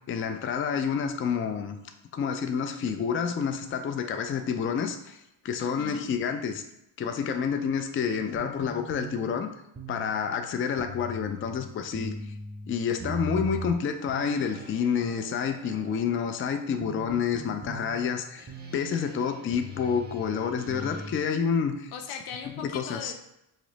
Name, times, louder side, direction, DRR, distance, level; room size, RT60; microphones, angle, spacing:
voice 1, 0.1-1.8 2.1-5.2 5.4-6.6 7.0-9.5 9.9-12.2 12.7-21.9 22.6-23.1, left 6 dB, 30° left, 7 dB, 0.3 m, -29 dB
voice 2, 5.6-6.2 21.9-23.1, left 6 dB, 85° left, 5 dB, 0.6 m, -39 dB
sound 1, 8.4-21.2, right 1 dB, 20° right, 0.6 m, -41 dB
2.9 x 2.0 x 3.9 m, 0.84 s
supercardioid pair, 60°, 47 cm